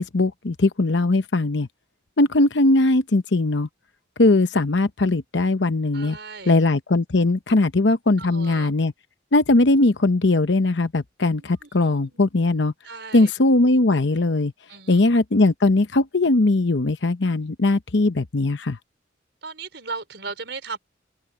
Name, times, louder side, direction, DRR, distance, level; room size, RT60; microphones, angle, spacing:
voice 1, 0.0-1.7 2.2-3.7 4.2-6.2 6.5-8.9 9.3-12.7 13.1-14.5 14.9-18.8, left 2 dB, 70° left, 0.9 m, -20 dB
voice 2, 5.9-6.6 8.2-8.7 11.6-12.2 12.8-13.3 14.7-15.0 19.4-20.8, right 4 dB, 65° right, 4.5 m, -36 dB
open air
head